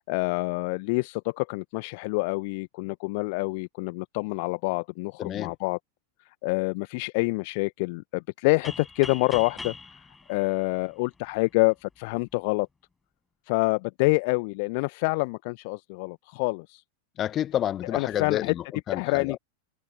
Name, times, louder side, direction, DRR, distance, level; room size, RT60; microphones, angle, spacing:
voice 1, 0.1-5.8 6.4-9.7 10.3-12.7 13.5-16.8 17.9-18.5 18.9-19.4, left 28 dB, 45° left, 1.0 m, -27 dB
voice 2, 5.2-5.5 17.2-19.4, left 11 dB, 30° left, 1.7 m, -30 dB
sound 1, 8.6-11.4, left 4 dB, 10° left, 7.2 m, -42 dB
figure-of-eight pair, 90°, 0 cm